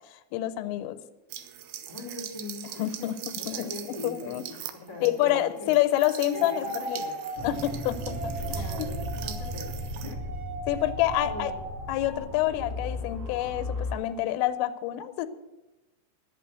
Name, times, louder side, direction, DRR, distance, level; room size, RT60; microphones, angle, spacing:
voice 1, 0.3-1.0 2.8-3.7 4.0-4.4 5.0-7.0 7.4-8.9 10.7-11.5 11.9-15.3, left 14 dB, 85° left, 11 dB, 3.3 m, -27 dB
sound 1, 1.3-10.1, right 11 dB, 80° right, 2.4 m, -42 dB
voice 2, 1.9-5.8 6.3-7.2 8.5-10.2 10.6-10.9 11.2-11.6, left 2 dB, 15° left, -2 dB, 0.8 m, -41 dB
sound 2, 6.3-12.2, right 2 dB, 30° right, 3.3 m, -39 dB
sound 3, 7.3-13.9, left 1 dB, 50° right, 2.6 m, -36 dB
11.5 x 8.3 x 8.0 m, 1.0 s
omnidirectional pair, 5.7 m